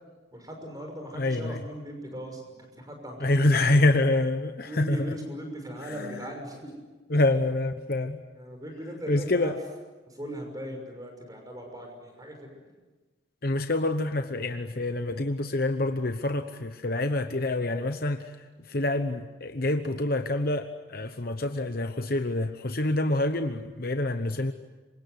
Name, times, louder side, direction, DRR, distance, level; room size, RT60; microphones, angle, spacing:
voice 1, 0.3-3.9 4.7-6.7 8.3-9.5 10.1-12.5, equal, 20° right, 3 dB, 6.1 m, -39 dB
voice 2, 1.1-1.6 3.2-5.0 7.1-8.2 9.1-9.5 13.4-18.2 18.7-24.5, left 2 dB, 50° left, 7 dB, 1.0 m, -26 dB
27.5 x 25.0 x 8.0 m, 1.3 s
head